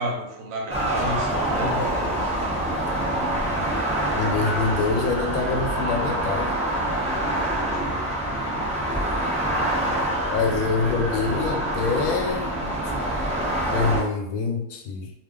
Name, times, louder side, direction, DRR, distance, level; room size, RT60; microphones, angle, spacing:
voice 1, 0.0-2.2 7.4-8.1, equal, 80° right, 1 dB, 1.1 m, -32 dB
sound 1, 0.7-14.0, right 1 dB, 5° right, 0.6 m, -26 dB
voice 2, 4.2-6.5 10.2-12.8 13.7-15.1, left 4 dB, 85° left, 2 dB, 1.0 m, -25 dB
2.4 x 2.3 x 3.6 m, 0.78 s
omnidirectional pair, 1.4 m